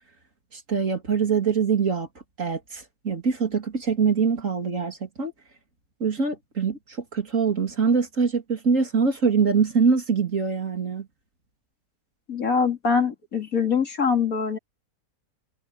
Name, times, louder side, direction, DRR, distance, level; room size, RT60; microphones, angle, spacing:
voice 1, 0.5-2.1 2.4-5.3 6.0-6.8 7.1-11.1, right 5 dB, 55° right, 3.2 m, -23 dB
voice 2, 12.3-14.6, left 5 dB, 65° left, 3.3 m, -23 dB
omnidirectional pair, 1.6 m